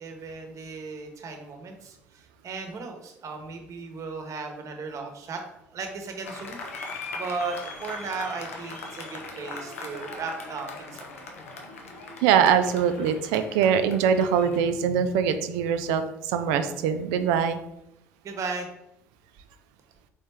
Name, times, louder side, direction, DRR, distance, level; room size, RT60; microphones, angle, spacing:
voice 1, 0.0-5.4 5.7-6.6 7.1-7.6 7.8-11.1 11.7-11.9 18.2-18.7, right 4 dB, 45° right, 4 dB, 1.0 m, -36 dB
Applause, 6.2-14.6, left 3 dB, 85° left, 0.7 m, -40 dB
voice 2, 12.2-17.6, right 7 dB, 70° right, 9 dB, 0.5 m, -23 dB
4.2 x 3.6 x 3.4 m, 0.83 s
figure-of-eight pair, 55°, 7 cm